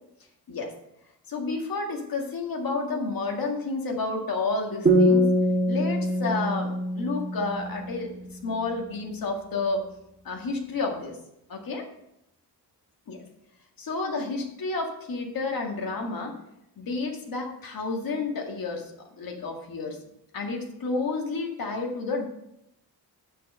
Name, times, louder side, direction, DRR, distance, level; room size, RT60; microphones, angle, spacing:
voice 1, 1.3-5.3 5.7-8.1 8.4-9.9 10.2-11.2 11.5-11.8 13.1-13.2 13.8-16.3 16.8-18.8 19.2-20.0 20.3-22.3, left 3 dB, 60° left, 2 dB, 1.9 m, -30 dB
sound 1, 4.9-8.3, equal, 30° right, 1.6 m, -24 dB
8.0 x 6.4 x 6.5 m, 0.81 s
wide cardioid pair, 155°, 39 cm